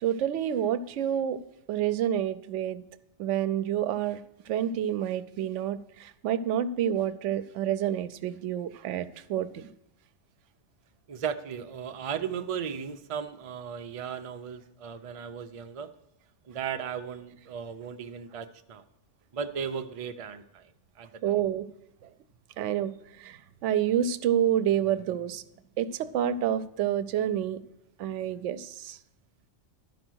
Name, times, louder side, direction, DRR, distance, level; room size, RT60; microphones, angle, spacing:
voice 1, 0.0-1.4 1.7-2.8 3.2-4.2 4.5-9.7 21.2-21.7 22.6-25.4 25.8-27.6 28.0-29.0, right 10 dB, 85° right, 14 dB, 0.9 m, -28 dB
voice 2, 11.1-15.9 16.5-18.8 19.3-20.7 21.0-21.1, right 7 dB, 40° right, 6 dB, 0.5 m, -36 dB
11.5 x 5.0 x 6.1 m, 0.88 s
omnidirectional pair, 1.2 m